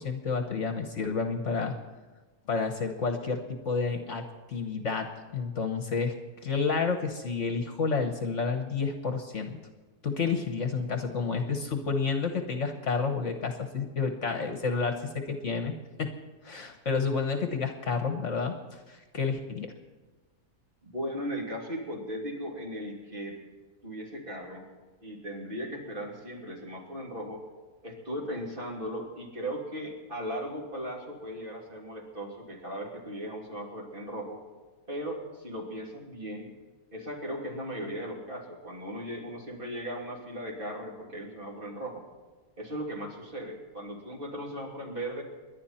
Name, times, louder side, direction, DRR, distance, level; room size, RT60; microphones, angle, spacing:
voice 1, 0.0-1.8 2.5-6.2 6.4-9.6 10.0-15.7 16.0-16.2 16.4-19.7, left 5 dB, 55° left, 5 dB, 1.5 m, -30 dB
voice 2, 20.8-23.4 23.8-24.6 25.0-27.4 27.8-34.4 34.9-36.5 36.9-42.0 42.6-45.2, equal, 35° right, -2 dB, 3.2 m, -37 dB
28.0 x 11.0 x 4.4 m, 1.3 s
omnidirectional pair, 1.6 m